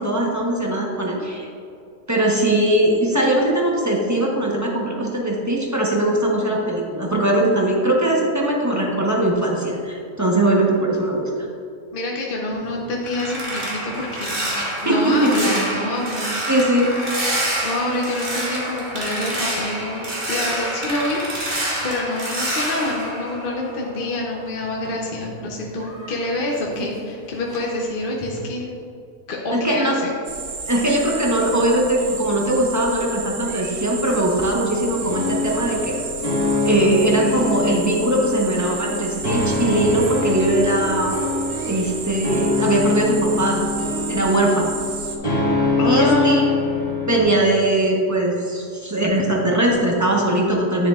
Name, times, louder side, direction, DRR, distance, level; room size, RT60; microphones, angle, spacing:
voice 1, 0.0-1.5 2.1-11.3 14.6-15.3 16.5-16.9 29.5-30.1 30.7-36.0 36.6-41.3 41.6-43.6 44.1-44.7 45.8-46.4 47.1-50.9, right 1 dB, 15° right, -2 dB, 0.8 m, -20 dB
voice 2, 11.9-16.3 17.6-21.5 21.8-28.7 29.3-30.1 45.8-46.6, left 1 dB, 45° left, -2 dB, 0.8 m, -27 dB
sound 1, 12.5-24.2 24.5-27.2 27.5-27.8 28.2-28.4, right 1 dB, 35° right, 1.5 m, -28 dB
sound 2, 30.2-45.2, right 5 dB, 60° right, 1.0 m, -32 dB
sound 3, 35.0-47.2, left 3 dB, 25° left, 1.6 m, -24 dB
10.0 x 6.9 x 2.4 m, 2.4 s
omnidirectional pair, 1.6 m